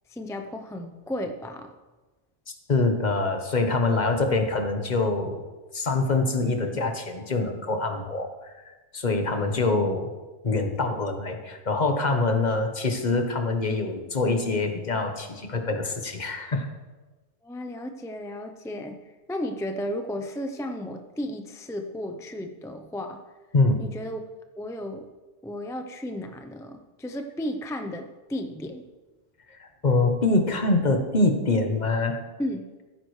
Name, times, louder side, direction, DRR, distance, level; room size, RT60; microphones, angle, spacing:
voice 1, 0.1-1.7 6.7-6.8 9.3-9.7 17.4-19.0 19.3-23.2 23.8-24.2 24.6-25.1 25.4-28.8 32.4-32.7, left 1 dB, 5° left, 6 dB, 0.3 m, -34 dB
voice 2, 2.7-5.4 5.7-8.5 8.9-10.1 10.4-16.7 23.5-23.8 29.6-32.2, left 3 dB, 40° left, 5 dB, 1.1 m, -25 dB
15.5 x 9.0 x 3.2 m, 1.2 s
omnidirectional pair, 1.2 m